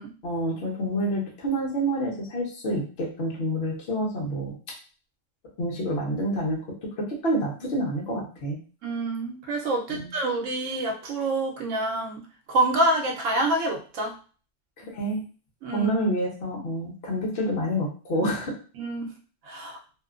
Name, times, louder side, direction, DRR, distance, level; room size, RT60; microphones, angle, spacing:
voice 1, 0.2-4.5 5.6-6.6 7.0-8.6 9.9-10.1 14.8-15.2 15.7-18.5, right 1 dB, 55° left, -2 dB, 1.1 m, -28 dB
voice 2, 8.8-12.2 12.5-14.1 15.6-15.9 18.8-19.1 19.5-19.8, right 2 dB, 80° right, 0 dB, 1.0 m, -27 dB
2.9 x 2.1 x 2.4 m, 0.38 s
omnidirectional pair, 1.3 m